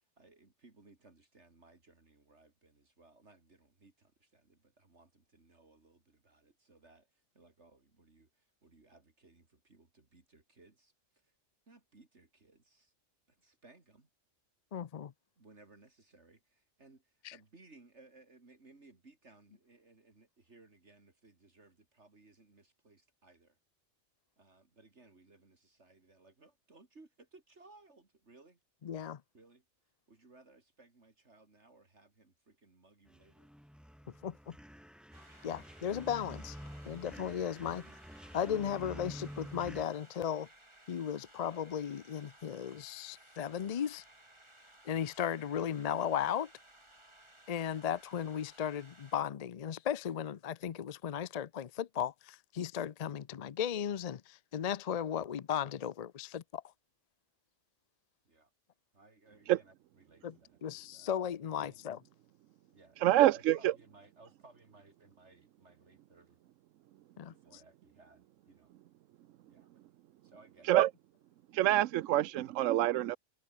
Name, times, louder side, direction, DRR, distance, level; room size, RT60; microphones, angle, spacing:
voice 1, 0.2-7.1 7.3-8.3 8.6-10.9 11.7-12.9 13.4-14.1 15.4-16.4 16.8-17.0 17.3-23.5 24.4-28.6 29.3-29.6 30.1-33.5 37.9-38.0 58.3-58.5 58.9-61.1 61.6-61.8 62.7-66.4 67.3-68.7 69.5-69.7 70.2-70.8, right 3 dB, 65° right, 3.4 m, -62 dB
voice 2, 14.7-15.1 17.2-17.4 28.8-29.2 34.2-34.6 35.4-36.6 36.9-37.9 38.3-40.5 40.9-44.0 44.9-46.5 47.5-56.6 60.2-62.0 67.2-67.6, left 9 dB, 50° left, 0.5 m, -36 dB
sound 1, 33.1-39.8, equal, ahead, 5.3 m, -49 dB
sound 2, 35.1-49.2, right 1 dB, 20° right, 3.3 m, -60 dB
voice 3, 63.0-63.7 70.6-70.9 71.5-73.2, right 14 dB, 85° right, 1.0 m, -26 dB
omnidirectional pair, 1.3 m